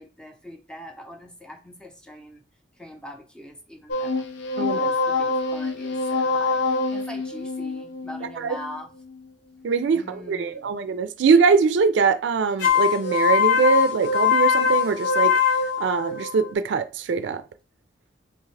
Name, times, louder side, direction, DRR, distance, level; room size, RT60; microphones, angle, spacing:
voice 1, 0.0-2.4 2.8-4.3 4.6-6.6 6.9-8.9 9.9-10.7, left 1 dB, 5° left, 0.6 m, -42 dB
sound 1, 3.9-9.3 12.6-16.5, left 6 dB, 80° left, 0.6 m, -23 dB
voice 2, 9.6-15.3 15.8-17.4, right 5 dB, 70° right, 0.4 m, -22 dB
3.6 x 2.4 x 3.2 m
head